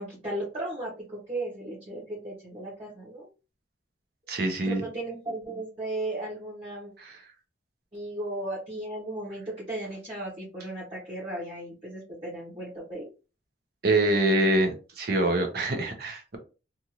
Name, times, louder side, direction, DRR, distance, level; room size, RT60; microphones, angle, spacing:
voice 1, 0.0-3.3 4.6-6.9 7.9-13.1, right 1 dB, 30° right, -7 dB, 1.1 m, -35 dB
voice 2, 4.3-4.8 7.0-7.2 13.8-16.4, right 1 dB, 55° right, 4 dB, 0.8 m, -25 dB
2.6 x 2.6 x 2.9 m, 0.32 s
head